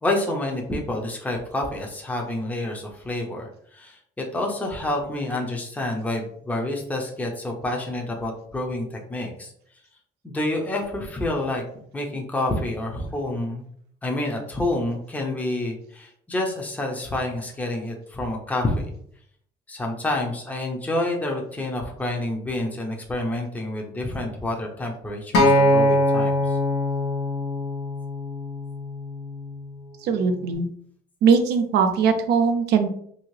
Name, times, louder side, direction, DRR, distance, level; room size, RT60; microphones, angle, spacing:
voice 1, 0.0-9.5 10.2-11.6 11.9-13.6 14.0-18.9 19.7-26.6, left 1 dB, 10° left, 1 dB, 0.6 m, -28 dB
Acoustic guitar, 25.3-29.6 30.4-30.5, left 1 dB, 90° left, 0.7 m, -22 dB
voice 2, 30.0-30.7 31.2-32.9, right 6 dB, 75° right, 6 dB, 0.5 m, -20 dB
2.8 x 2.8 x 3.1 m, 0.65 s
cardioid pair, 110°, 17 cm